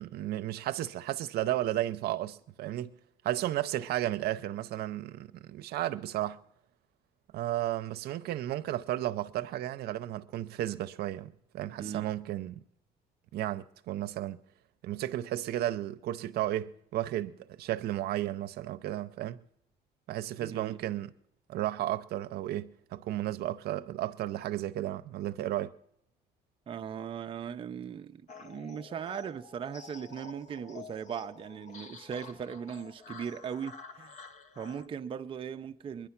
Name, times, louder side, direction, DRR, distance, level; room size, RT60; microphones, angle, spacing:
voice 1, 0.0-3.0 3.2-6.4 7.3-12.6 13.3-14.4 14.8-19.4 20.1-21.1 21.5-25.7, right 14 dB, 70° right, 0.6 m, -33 dB
voice 2, 20.4-20.8 26.7-34.2 34.6-36.1, right 7 dB, 30° right, 0.5 m, -39 dB
sound 1, 28.3-34.9, left 4 dB, 45° left, 0.8 m, -49 dB
22.0 x 10.5 x 5.8 m
cardioid pair, 110°, 17 cm